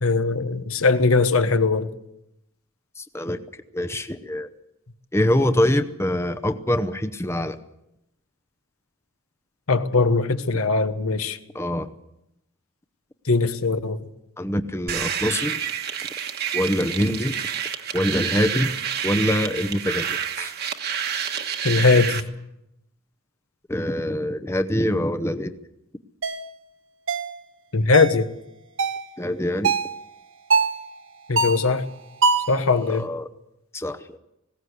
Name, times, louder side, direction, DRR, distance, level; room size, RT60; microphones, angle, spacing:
voice 1, 0.0-1.9 9.7-11.4 13.3-14.1 21.6-22.2 27.7-28.3 31.3-31.8 32.5-33.1, left 3 dB, 80° left, 1.3 m, -20 dB
voice 2, 3.0-3.4 3.7-4.5 5.1-7.6 11.5-11.9 14.4-15.6 16.5-17.3 17.9-18.7 19.0-20.1 20.4-20.5 23.7-25.6 29.2-29.7 32.9-33.3 33.7-34.2, left 1 dB, 10° left, 0.7 m, -24 dB
sound 1, 14.9-22.2, right 8 dB, 45° right, 1.4 m, -28 dB
sound 2, 26.2-26.4 27.1-27.3 27.9-28.2 28.8-29.0 29.6-29.9 30.5-30.8 31.4-31.7 32.2-32.6, right 4 dB, 65° right, 1.3 m, -22 dB
19.5 x 17.0 x 8.3 m
head